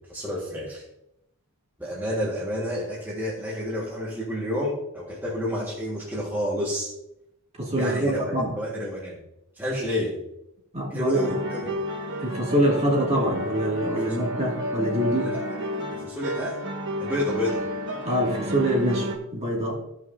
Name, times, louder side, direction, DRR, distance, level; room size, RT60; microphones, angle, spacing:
voice 1, 0.1-0.8 1.8-6.9 7.8-9.2 9.6-10.2 10.9-11.8 13.9-14.2 15.2-15.6 15.9-16.6 17.0-17.6, left 1 dB, 10° right, -6 dB, 1.7 m, -30 dB
voice 2, 7.6-8.6 10.7-11.2 12.2-15.3 18.0-19.8, right 1 dB, 30° right, -2 dB, 2.3 m, -25 dB
sound 1, 11.1-19.2, equal, 55° right, 1.7 m, -31 dB
15.5 x 5.8 x 2.7 m, 0.82 s
head